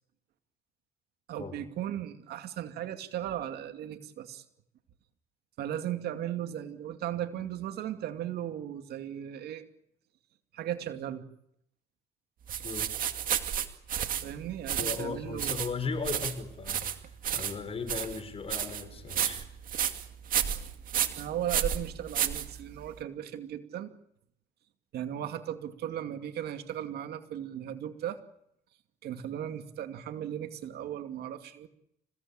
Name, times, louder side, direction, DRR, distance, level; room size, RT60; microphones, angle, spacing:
voice 1, 1.3-4.4 5.6-9.6 10.5-11.2 14.2-15.6 21.1-23.9 24.9-28.2 29.0-31.7, right 11 dB, 70° right, 7 dB, 2.5 m, -36 dB
sound 1, 12.5-23.0, right 9 dB, 55° right, 2.4 m, -32 dB
voice 2, 14.8-16.9 17.3-19.5, left 4 dB, 35° left, 11 dB, 5.5 m, -37 dB
28.5 x 17.5 x 8.8 m, 0.73 s
cardioid pair, 110°, 17 cm